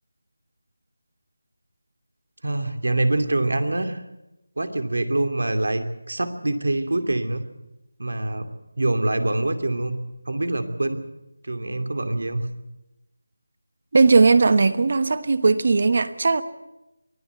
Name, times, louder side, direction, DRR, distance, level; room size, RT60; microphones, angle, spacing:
voice 1, 2.4-4.0 4.6-7.4 8.0-8.5 8.8-10.0 10.3-11.0 11.4-12.5, right 2 dB, 75° right, 8 dB, 2.6 m, -25 dB
voice 2, 13.9-16.4, right 4 dB, 40° right, 14 dB, 1.2 m, -18 dB
23.5 x 16.0 x 8.0 m, 0.95 s
figure-of-eight pair, 175°, 0 cm